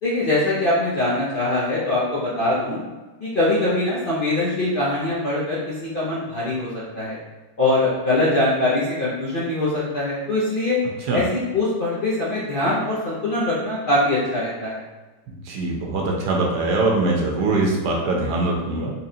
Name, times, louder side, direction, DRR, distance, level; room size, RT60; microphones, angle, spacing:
voice 1, 0.0-2.8 3.2-7.2 7.6-10.8 11.1-14.8, left 2 dB, 60° left, -8 dB, 0.5 m, -22 dB
voice 2, 15.5-18.9, right 2 dB, 80° right, -1 dB, 1.3 m, -22 dB
4.1 x 3.1 x 2.7 m, 1.2 s
omnidirectional pair, 1.8 m